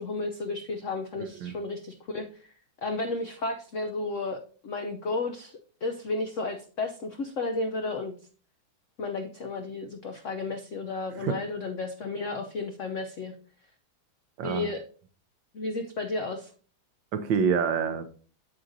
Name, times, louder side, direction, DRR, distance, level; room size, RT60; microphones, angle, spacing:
voice 1, 0.0-2.5 2.8-8.1 9.0-13.3 14.4-14.8 15.5-16.5, left 3 dB, 85° left, 0.6 m, -33 dB
voice 2, 1.1-1.5 11.1-11.4 14.4-14.7 17.1-18.1, right 6 dB, 70° right, 1.3 m, -27 dB
8.6 x 7.9 x 2.6 m
omnidirectional pair, 2.3 m